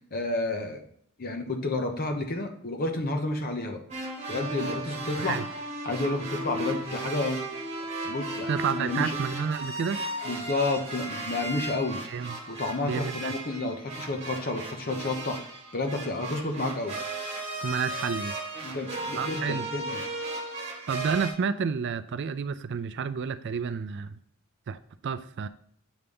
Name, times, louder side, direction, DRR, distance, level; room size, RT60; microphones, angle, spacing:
voice 1, 0.1-0.8 1.2-3.8 4.3-5.4 5.8-7.4 8.0-9.1 10.2-12.0 12.5-15.4 15.7-17.0 18.6-20.0, left 2 dB, 45° left, 3 dB, 1.0 m, -30 dB
sound 1, 3.9-21.3, right 2 dB, 30° right, 1.6 m, -35 dB
voice 2, 8.5-10.0 12.1-12.4 12.9-13.3 17.6-18.4 19.1-19.7 20.9-24.2 24.7-25.5, right 6 dB, 50° right, 13 dB, 0.4 m, -30 dB
8.1 x 3.4 x 5.3 m, 0.65 s
head